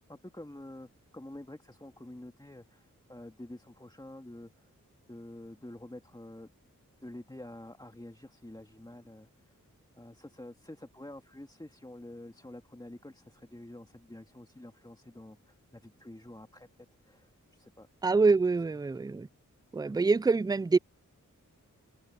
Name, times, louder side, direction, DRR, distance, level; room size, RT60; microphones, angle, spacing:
voice 1, 0.1-4.7 5.1-6.5 7.0-9.6 10.0-16.7 17.0-17.9 19.0-19.1 19.9-20.0, left 1 dB, 15° left, 2.2 m, -48 dB
voice 2, 18.0-19.3 19.7-20.8, right 4 dB, 15° right, 0.4 m, -25 dB
wide cardioid pair, 70°, 32 cm